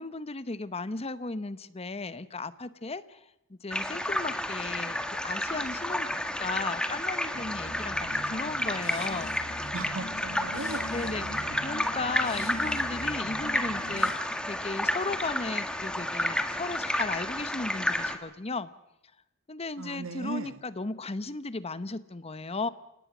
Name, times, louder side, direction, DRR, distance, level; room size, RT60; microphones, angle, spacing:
voice 1, 0.0-3.2 3.5-5.0 5.2-9.4 10.9-18.7 19.5-22.7, left 3 dB, 30° left, 14 dB, 0.9 m, -35 dB
sound 1, 3.7-18.2, left 1 dB, 5° left, 1.7 m, -31 dB
sound 2, 7.3-14.1, left 1 dB, 85° left, 6.4 m, -42 dB
voice 2, 9.7-11.6 19.8-20.6, right 3 dB, 85° right, 11 dB, 1.5 m, -38 dB
28.5 x 18.0 x 6.1 m, 0.85 s
head